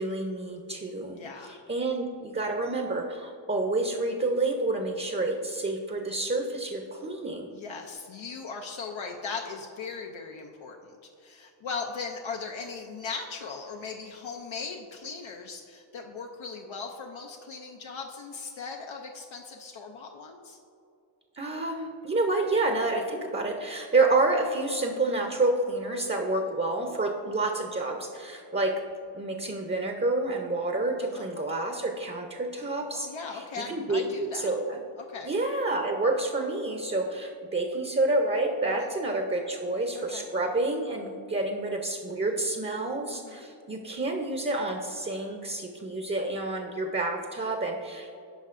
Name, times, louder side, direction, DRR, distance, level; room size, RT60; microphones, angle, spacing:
voice 1, 0.0-7.5 21.3-28.8 29.1-34.8 35.2-48.2, right 2 dB, 25° right, 3 dB, 0.6 m, -29 dB
voice 2, 1.2-1.6 7.5-10.9 11.2-20.6 31.0-31.3 32.9-34.5 35.1-35.3 38.8-38.9 40.1-40.3 43.1-43.5, left 4 dB, 80° left, 2 dB, 0.6 m, -38 dB
10.0 x 5.4 x 2.5 m, 2.6 s
cardioid pair, 40°, 46 cm